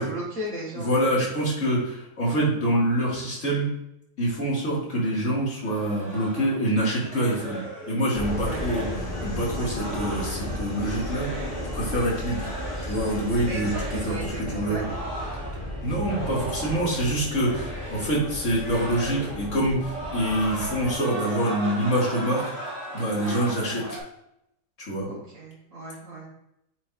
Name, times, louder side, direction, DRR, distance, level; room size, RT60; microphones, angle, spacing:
voice 1, 0.0-1.0 8.3-8.6 9.4-9.7 13.4-15.0 23.2-23.4 25.1-26.3, right 1 dB, 75° right, -9 dB, 2.0 m, -36 dB
voice 2, 0.7-3.7 4.2-7.6 7.9-8.9 9.2-11.3 11.7-12.5 12.8-14.8 15.8-22.4 22.9-23.8 24.8-25.1, right 1 dB, 75° left, -5 dB, 2.5 m, -26 dB
sound 1, 5.6-11.8 12.2-13.1 13.4-14.2 14.7-17.0 17.3-18.2 18.5-19.5 19.8-24.0, right 1 dB, 60° left, 2.5 m, -37 dB
Subway metro underground, 8.1-21.0, left 1 dB, 40° left, 1.7 m, -34 dB
8.5 x 5.0 x 2.5 m, 0.80 s
omnidirectional pair, 1.4 m